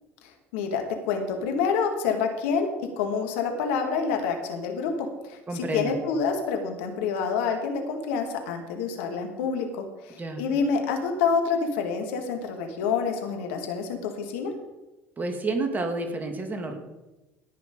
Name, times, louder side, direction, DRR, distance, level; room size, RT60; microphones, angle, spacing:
voice 1, 0.5-14.5, left 5 dB, 70° left, 4 dB, 1.9 m, -27 dB
voice 2, 5.5-6.0 10.2-10.4 15.2-16.8, right 3 dB, 25° right, 4 dB, 2.3 m, -29 dB
17.0 x 6.1 x 5.2 m, 1.1 s
hypercardioid pair, 65°, 7 cm